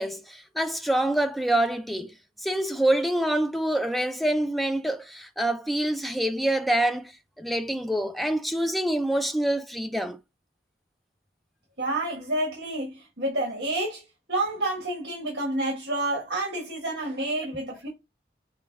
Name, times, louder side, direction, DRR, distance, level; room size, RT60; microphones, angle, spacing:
voice 1, 0.0-7.1 7.4-10.2, right 1 dB, ahead, 0.3 m, -26 dB
voice 2, 11.8-14.0 14.3-17.9, right 1 dB, 60° right, 1.6 m, -29 dB
6.4 x 2.3 x 3.5 m
head